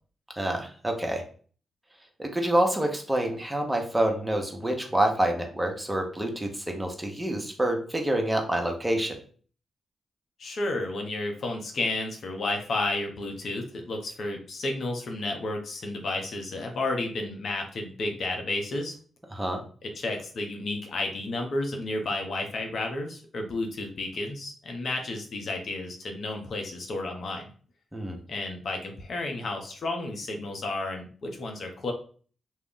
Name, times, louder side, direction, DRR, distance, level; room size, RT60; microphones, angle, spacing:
voice 1, 0.4-1.2 2.2-9.2 19.3-19.6 27.9-28.2, right 1 dB, 15° right, 3 dB, 0.8 m, -27 dB
voice 2, 10.4-19.0 19.8-27.5 28.3-31.9, left 2 dB, 65° left, 2 dB, 0.6 m, -32 dB
2.4 x 2.1 x 3.6 m, 0.42 s
hypercardioid pair, 40°, 0 cm